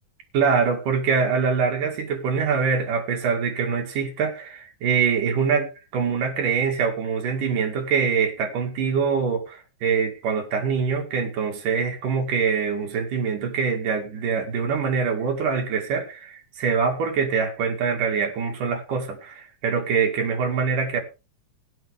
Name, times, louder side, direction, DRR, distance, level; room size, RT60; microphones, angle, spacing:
voice 1, 0.3-21.0, right 6 dB, 75° right, 3.7 m, -24 dB
15.0 x 11.0 x 3.5 m
omnidirectional pair, 3.8 m